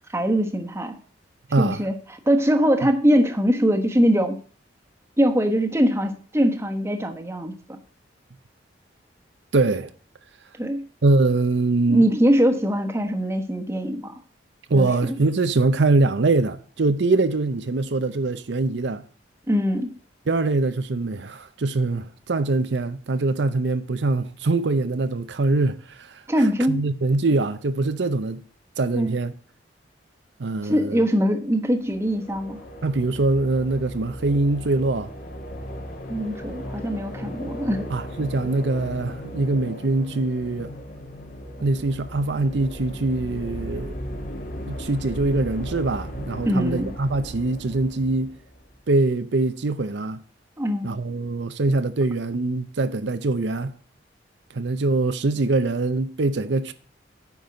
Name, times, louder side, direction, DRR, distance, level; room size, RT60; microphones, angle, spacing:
voice 1, 0.1-0.9 1.6-1.9 2.3-4.3 5.2-7.8 10.6-10.9 11.9-14.1 14.7-15.2 19.5-19.9 26.3-26.8 28.9-29.1 30.6-32.6 36.1-37.9 46.4-46.9 50.6-50.9, equal, 15° right, 1.2 m, -22 dB
voice 2, 1.5-1.9 9.5-9.9 11.0-12.1 14.7-19.0 20.3-28.4 28.8-29.3 30.4-31.1 32.8-35.1 37.9-40.7 41.6-44.0 44.7-48.3 48.9-50.2 50.8-53.8 54.5-56.7, right 3 dB, 70° right, 0.6 m, -23 dB
sound 1, 31.8-48.8, equal, 50° left, 1.8 m, -36 dB
9.3 x 5.5 x 7.6 m
head